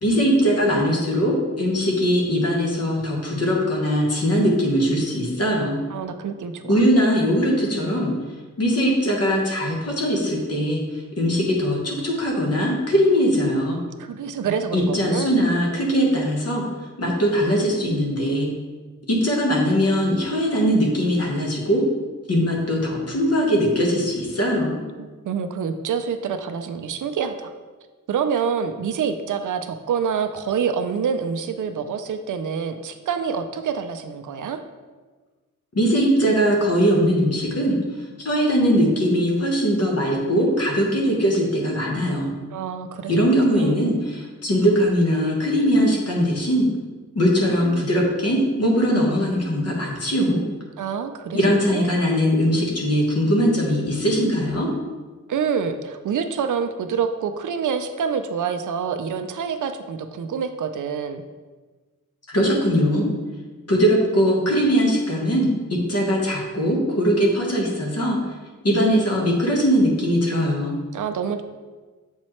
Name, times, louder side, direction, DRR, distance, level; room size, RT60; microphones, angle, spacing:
voice 1, 0.0-5.8 6.6-8.1 8.6-10.8 11.2-13.8 14.7-16.6 17.0-18.5 19.1-21.8 22.3-24.8 35.7-37.8 38.2-42.3 43.1-46.7 47.1-50.4 51.3-54.7 62.3-63.1 63.7-65.5 65.9-68.2 68.6-70.8, equal, 50° left, -1 dB, 1.3 m, -20 dB
voice 2, 5.9-6.8 14.0-15.3 25.0-27.5 28.1-34.6 42.5-43.8 50.8-51.9 55.3-61.2 70.9-71.4, right 6 dB, 75° right, 7 dB, 0.5 m, -27 dB
7.4 x 4.3 x 3.1 m, 1.3 s
wide cardioid pair, 125°, 31 cm